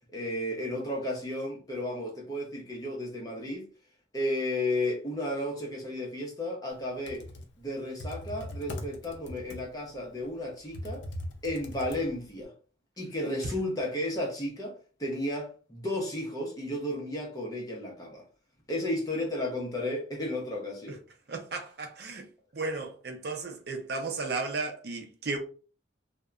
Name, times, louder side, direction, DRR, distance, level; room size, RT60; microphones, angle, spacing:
voice 1, 0.1-3.7 4.1-7.3 7.6-11.0 11.4-12.5 13.0-14.7 15.0-18.2 18.7-21.0, left 1 dB, 20° left, 0.7 m, -33 dB
Computer keyboard, 6.8-12.4, left 1 dB, 70° left, 0.5 m, -41 dB
voice 2, 21.3-22.3 22.5-25.4, right 3 dB, 55° right, 0.5 m, -34 dB
2.8 x 2.1 x 2.3 m
head